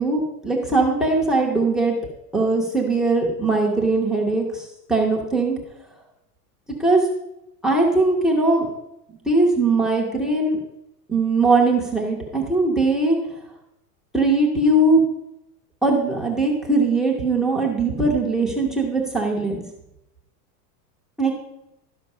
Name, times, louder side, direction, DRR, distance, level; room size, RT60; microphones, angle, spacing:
voice 1, 0.0-2.0 2.3-4.4 4.9-5.6 6.7-7.0 7.6-8.7 9.3-10.6 11.1-13.2 14.1-15.0 15.8-19.6 21.2-21.3, right 2 dB, ahead, 0 dB, 0.3 m, -20 dB
12.0 x 5.3 x 5.2 m, 0.88 s
supercardioid pair, 160°, 47 cm